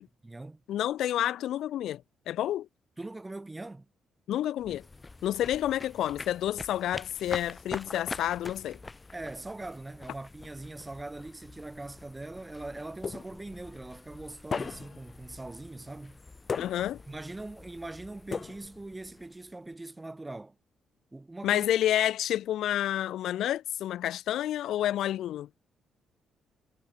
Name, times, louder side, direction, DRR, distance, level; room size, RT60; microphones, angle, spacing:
voice 1, 0.0-0.6 3.0-3.9 9.1-16.2 17.1-20.6 21.1-21.7, right 2 dB, 15° right, 7.2 m, -42 dB
voice 2, 0.7-2.7 4.3-4.8 5.2-8.8 16.6-17.0 21.4-25.5, left 12 dB, 75° left, 1.5 m, -29 dB
sound 1, 4.6-19.7, left 3 dB, 25° left, 7.3 m, -46 dB
sound 2, 13.0-13.6 14.5-15.1 16.5-17.1 18.3-19.0, left 5 dB, 40° left, 7.1 m, -36 dB
cardioid pair, 90°, 0 cm